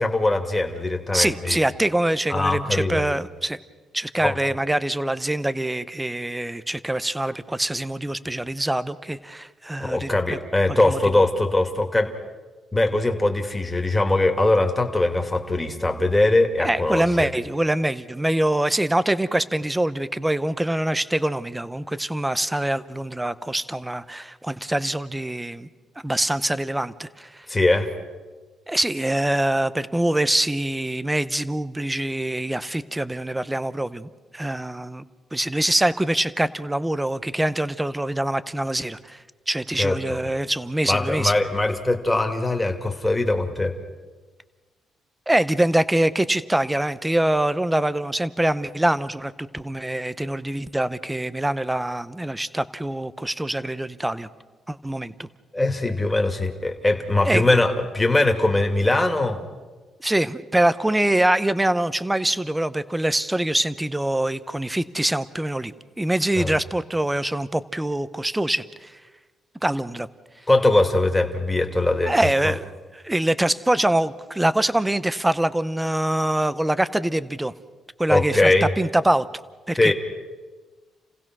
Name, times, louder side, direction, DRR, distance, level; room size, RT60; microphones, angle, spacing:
voice 1, 0.0-1.6 2.3-3.1 4.2-4.4 9.8-12.1 12.7-17.3 27.5-27.9 39.8-40.2 40.9-43.7 55.5-59.4 66.4-66.5 70.5-72.1 72.4-72.5 78.1-78.7 79.8-79.9, left 2 dB, 10° left, 4 dB, 2.4 m, -21 dB
voice 2, 1.1-3.6 3.9-10.4 10.8-11.2 16.6-25.7 26.0-27.5 28.7-35.0 35.3-41.3 45.3-54.3 54.7-55.3 57.2-57.6 60.0-69.0 69.6-70.1 72.1-77.5 78.0-79.3 79.7-79.9, right 1 dB, 10° right, 15 dB, 0.8 m, -24 dB
29.0 x 16.0 x 6.2 m, 1.3 s
cardioid pair, 90°, 0 cm